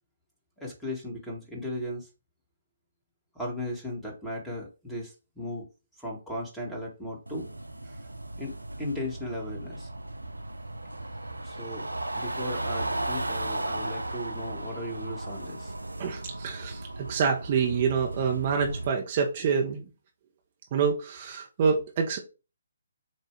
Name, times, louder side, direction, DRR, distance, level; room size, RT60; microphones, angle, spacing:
voice 1, 0.6-2.1 3.4-5.7 6.0-7.5 8.4-9.9 11.4-11.9 12.1-15.7, left 1 dB, 5° left, -2 dB, 1.8 m, -36 dB
sound 1, 7.3-18.9, right 1 dB, 85° right, 0.6 m, -35 dB
voice 2, 16.0-19.8 20.7-22.2, right 6 dB, 35° right, 1 dB, 1.1 m, -27 dB
7.5 x 2.7 x 4.6 m, 0.30 s
figure-of-eight pair, 140°, 0 cm